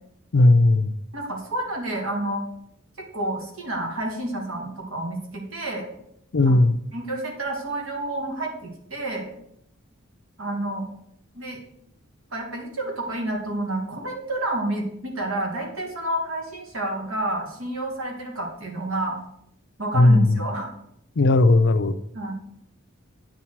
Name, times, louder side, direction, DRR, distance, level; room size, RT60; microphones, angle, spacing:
voice 1, 0.3-1.0 6.3-6.8 19.9-20.4 21.2-22.0, left 2 dB, 60° left, 0.5 m, -17 dB
voice 2, 1.1-2.4 3.0-5.9 6.5-6.6 6.9-9.3 10.4-10.9 11.3-11.6 12.3-19.2 19.8-20.7 22.1-22.3, right 1 dB, 70° right, 2.1 m, -29 dB
9.4 x 7.2 x 4.6 m
head